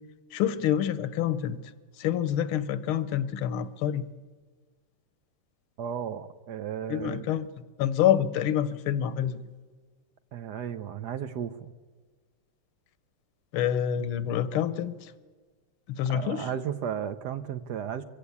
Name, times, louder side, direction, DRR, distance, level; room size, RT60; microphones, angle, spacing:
voice 1, 0.3-1.6 2.0-4.0 6.9-7.4 7.8-9.4 13.5-15.1 15.9-16.5, left 10 dB, 85° left, 15 dB, 1.7 m, -27 dB
voice 2, 5.8-7.3 10.3-11.7 16.1-18.0, right 8 dB, 65° right, 12 dB, 1.2 m, -34 dB
23.5 x 15.5 x 8.4 m, 1.5 s
omnidirectional pair, 2.3 m